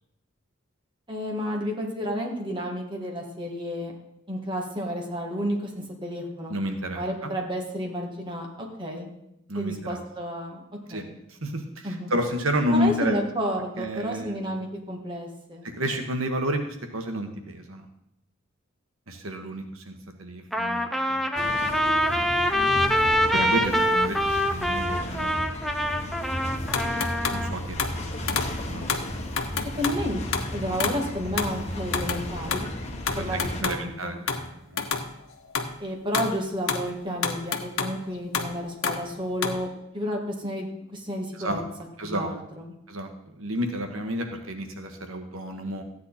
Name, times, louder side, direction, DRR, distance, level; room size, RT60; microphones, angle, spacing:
voice 1, 1.1-3.9 4.3-6.5 6.9-9.1 9.6-10.6 10.9-11.2 11.8-12.1 12.7-15.7 23.4-23.8 29.8-30.2 30.5-32.7 33.2-34.2 35.8-39.7 39.9-41.6 42.0-42.7, equal, 25° right, 0 dB, 2.1 m, -31 dB
voice 2, 6.5-7.3 9.5-10.0 10.9-11.0 11.3-13.2 13.8-14.5 15.6-17.8 19.1-21.5 23.3-25.4 27.0-27.1 27.3-29.1 33.1-34.8 41.3-41.6 42.0-42.3 42.9-43.1 43.4-45.8, equal, 85° right, 5 dB, 1.4 m, -31 dB
Trumpet, 20.5-27.5, equal, ahead, 0.7 m, -25 dB
sound 1, 21.3-33.6, left 1 dB, 30° left, 1.6 m, -34 dB
Drops on a drain pipe, 26.7-27.5 27.8-28.0 28.3-28.6 28.9-30.0 30.3-31.0 31.4-31.6 31.9-32.2 32.5-33.8 34.3-34.5 34.8-35.1 35.5-35.8 36.1-36.4 36.6-38.0 38.3-39.6, left 5 dB, 75° left, 1.2 m, -29 dB
14.0 x 9.5 x 4.2 m, 0.83 s
head